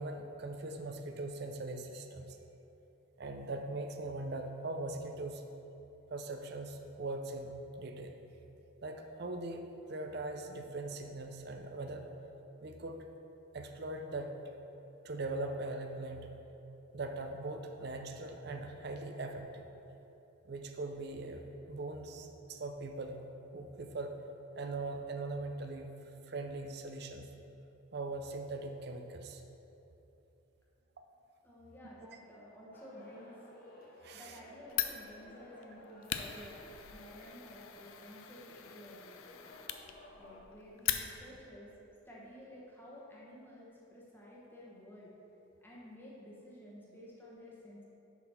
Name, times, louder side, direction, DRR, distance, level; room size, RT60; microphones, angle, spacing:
voice 1, 0.0-2.4 3.2-5.4 6.1-8.1 8.8-12.0 12.6-13.0 13.5-14.3 15.0-16.3 16.9-19.7 20.4-21.4 21.7-23.2 23.5-24.1 24.6-25.9 26.3-27.3 27.9-29.4 34.0-34.4, right 2 dB, 50° right, 5 dB, 0.5 m, -41 dB
voice 2, 31.4-33.4 34.1-39.2 40.2-41.7 42.0-45.1 45.6-47.8, equal, 10° left, -6 dB, 1.0 m, -52 dB
sound 1, 32.7-40.4, left 1 dB, 45° left, 0.8 m, -56 dB
Fire, 34.7-41.5, left 11 dB, 80° left, 0.4 m, -41 dB
6.9 x 4.0 x 5.6 m, 3.0 s
head